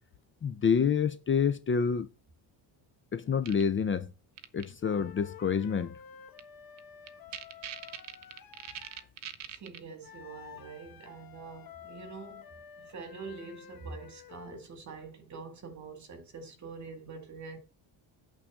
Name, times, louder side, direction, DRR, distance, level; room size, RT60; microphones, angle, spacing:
voice 1, 0.4-2.1 3.1-4.1 4.5-6.0, left 6 dB, 30° left, 0.4 m, -28 dB
sound 1, 3.5-3.6 4.4-4.7 6.4-6.5 6.8-6.9 7.1-9.8, right 10 dB, 65° right, 1.0 m, -41 dB
sound 2, 4.8-9.1 10.0-14.6, left 9 dB, 50° left, 1.2 m, -51 dB
voice 2, 9.5-12.5 12.8-17.6, right 4 dB, 40° right, 2.1 m, -45 dB
8.6 x 3.7 x 6.3 m
cardioid pair, 170°, 45 cm